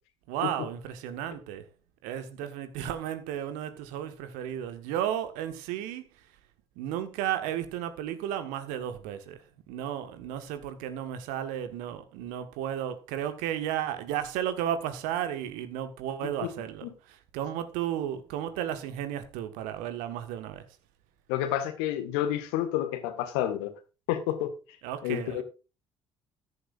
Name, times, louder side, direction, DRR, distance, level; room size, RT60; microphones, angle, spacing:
voice 1, 0.3-1.7 2.0-6.1 6.7-20.6 24.8-25.4, right 10 dB, 65° right, 1.6 m, -33 dB
voice 2, 21.3-23.8 24.1-24.5 25.0-25.4, left 11 dB, 70° left, 1.7 m, -29 dB
14.5 x 11.0 x 2.6 m
figure-of-eight pair, 50°, 14 cm